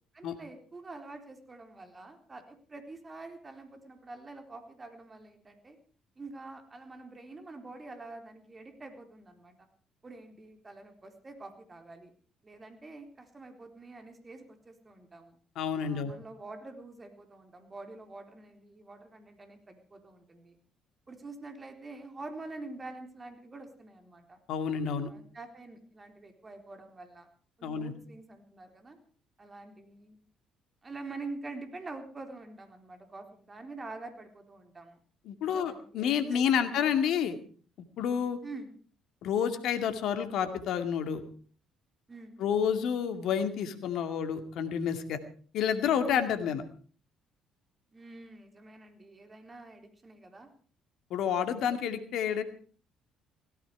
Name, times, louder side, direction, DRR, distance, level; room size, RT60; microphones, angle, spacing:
voice 1, 0.1-5.8 6.2-9.6 10.0-12.1 12.4-15.4 15.8-20.6 21.1-24.4 25.0-27.3 27.6-29.0 29.4-30.2 30.8-35.0 35.5-37.0 38.4-38.7 42.1-42.4 46.0-46.3 47.9-50.5, right 3 dB, 30° right, 5 dB, 4.0 m, -46 dB
voice 2, 15.6-16.1 24.5-25.1 27.6-27.9 35.3-37.4 38.0-38.4 39.2-41.2 42.4-45.2 45.5-46.6 51.1-52.4, left 8 dB, 65° left, 9 dB, 2.2 m, -29 dB
17.0 x 15.5 x 4.8 m, 0.43 s
hypercardioid pair, 50°, 0 cm